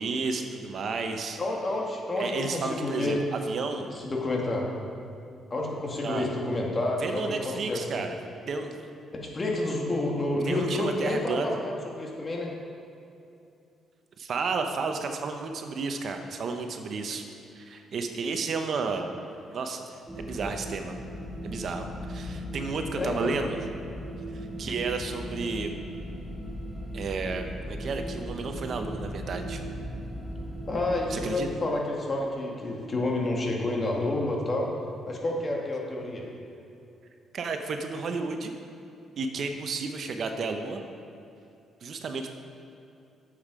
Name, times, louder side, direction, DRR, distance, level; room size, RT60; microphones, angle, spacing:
voice 1, 0.0-1.4 2.2-3.9 6.0-6.3 7.0-8.1 8.5-8.8 10.4-11.6 14.2-17.2 17.5-19.2 19.5-20.9 21.4-23.6 24.3-25.7 26.9-29.6 31.1-31.5 37.3-38.5 39.2-40.8 41.8-42.3, right 4 dB, 55° right, 5 dB, 0.8 m, -32 dB
voice 2, 1.4-3.2 3.9-4.7 5.5-7.8 9.1-12.5 22.9-23.5 30.7-34.7 35.1-36.3, left 2 dB, 35° left, -1 dB, 1.8 m, -29 dB
sound 1, 20.1-31.3, equal, 5° right, 1.3 m, -37 dB
8.5 x 7.5 x 5.0 m, 2.7 s
cardioid pair, 90°, 0 cm